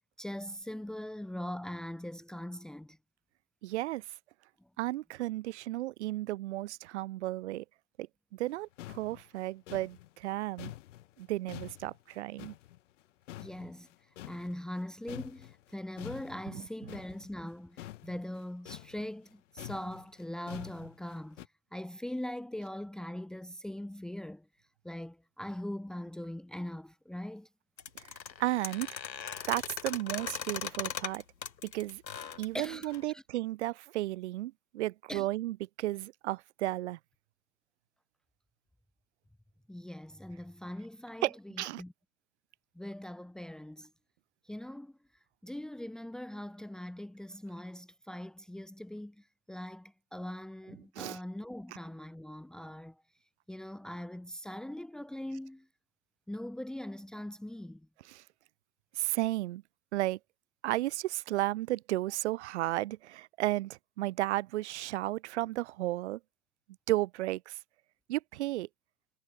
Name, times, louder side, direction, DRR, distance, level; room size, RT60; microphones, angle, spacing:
voice 1, 0.2-3.0 13.4-13.9 14.2-24.5 24.8-27.5 32.5-33.2 35.1-35.3 39.7-41.3 41.5-41.9 42.7-43.9 44.4-44.9 45.4-53.0 53.5-55.7 56.3-57.9, left 1 dB, ahead, 2.5 m, -41 dB
voice 2, 3.6-4.0 4.8-7.6 8.0-8.1 8.3-10.7 11.2-12.5 27.9-28.1 28.4-29.0 29.5-31.2 31.6-32.0 32.4-37.0 41.2-41.8 50.9-51.2 58.1-58.2 58.9-59.6 59.9-60.2 60.6-66.2 66.9-67.6 68.1-68.7, right 16 dB, 40° right, 4.9 m, -33 dB
sound 1, 8.5-8.6 8.8-13.0 13.3-14.8 15.1-21.5, left 14 dB, 45° left, 5.6 m, -47 dB
sound 2, 27.8-33.0, left 7 dB, 85° left, 6.5 m, -39 dB
hypercardioid pair, 155°, 50 cm